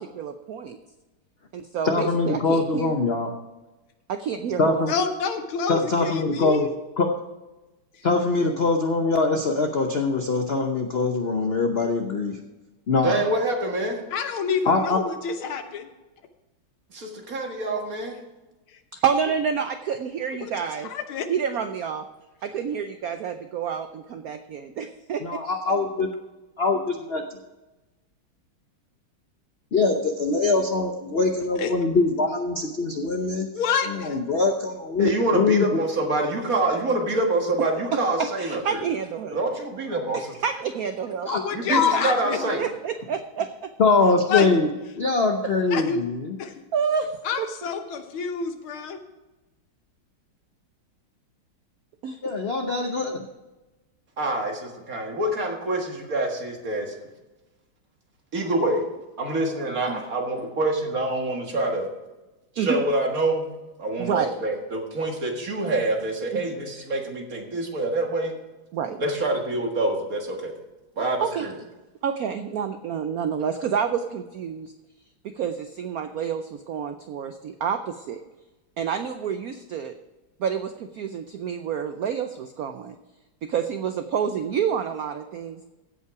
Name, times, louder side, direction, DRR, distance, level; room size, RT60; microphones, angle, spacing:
voice 1, 0.2-0.8 1.5-3.0 4.1-5.0 18.9-20.9 21.3-22.1 22.4-25.4 37.9-39.4 40.1-41.3 42.6-43.7 46.7-47.5 52.0-52.2 59.9-60.0 62.6-62.8 64.0-64.4 66.3-66.5 68.7-69.0 71.2-71.5 72.0-74.7 75.2-78.2 78.8-79.9 80.4-83.0 83.4-85.6, right 7 dB, 80° right, 8 dB, 0.8 m, -28 dB
voice 2, 1.8-3.3 4.6-4.9 5.7-6.7 7.0-7.1 8.0-12.4 12.9-13.2 14.6-15.0 25.2-26.1 26.6-27.4 29.7-33.5 33.9-35.6 41.3-41.4 41.7-42.1 42.4-42.5 43.8-44.7 44.9-46.4 52.2-53.3, left 3 dB, 55° left, 4 dB, 0.6 m, -23 dB
voice 3, 4.9-6.7 14.1-15.9 18.7-18.8 20.4-20.5 20.8-21.3 31.6-31.7 33.5-34.2 41.3-42.6 44.3-44.5 45.7-46.0 46.4-46.5 47.2-49.0, left 6 dB, 90° left, 7 dB, 1.9 m, -28 dB
voice 4, 13.0-14.0 16.9-18.2 35.0-38.8 39.3-40.2 41.5-42.6 54.2-57.0 58.3-58.8 59.2-61.9 62.6-63.5 63.8-68.3 69.0-70.5 71.0-71.5, right 2 dB, 45° right, 2 dB, 1.9 m, -26 dB
16.0 x 5.6 x 4.7 m, 1.1 s
omnidirectional pair, 2.2 m